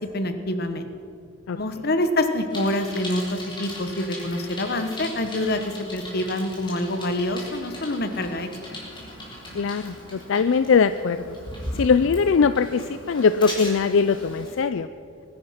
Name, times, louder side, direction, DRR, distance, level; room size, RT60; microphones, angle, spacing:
voice 1, 0.1-0.9 1.6-8.8, left 1 dB, 50° left, 8 dB, 1.2 m, -26 dB
Bicycle, 2.5-14.5, left 1 dB, 25° left, 4.0 m, -38 dB
voice 2, 9.5-11.4 11.7-14.9, left 5 dB, 75° left, 12 dB, 0.4 m, -21 dB
22.0 x 10.0 x 5.8 m, 2.5 s
head